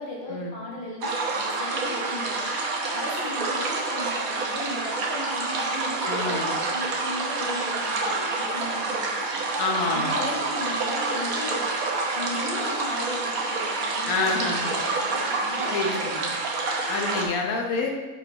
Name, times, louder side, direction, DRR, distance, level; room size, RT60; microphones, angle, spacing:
voice 1, 0.0-2.5 2.9-9.4 9.8-11.7 12.1-16.0, left 1 dB, 45° left, -5 dB, 1.8 m, -36 dB
sound 1, 1.0-17.2, right 3 dB, 85° right, 1.4 m, -28 dB
voice 2, 6.0-6.5 9.6-10.3 14.1-14.8 15.7-16.2 16.9-17.9, left 3 dB, 90° left, 0 dB, 1.4 m, -27 dB
5.9 x 5.1 x 4.7 m, 1.3 s
omnidirectional pair, 1.4 m